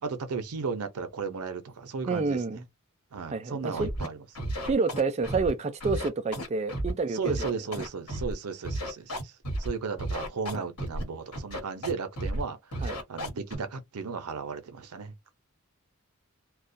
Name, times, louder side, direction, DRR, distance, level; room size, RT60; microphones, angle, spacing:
voice 1, 0.0-2.6 3.1-4.2 7.1-9.3 9.6-15.1, right 5 dB, 85° right, 0.6 m, -35 dB
voice 2, 2.1-2.6 3.3-3.9 4.6-7.5 10.5-10.6 12.8-13.0, right 3 dB, 30° right, 0.3 m, -29 dB
Scratching (performance technique), 3.8-4.1 4.3-5.5 5.8-6.9 7.2-8.3 8.6-9.7 10.0-11.0 11.3-11.9 12.2-12.4 12.7-13.5, right 1 dB, 90° left, 1.2 m, -33 dB
2.3 x 2.1 x 2.6 m
head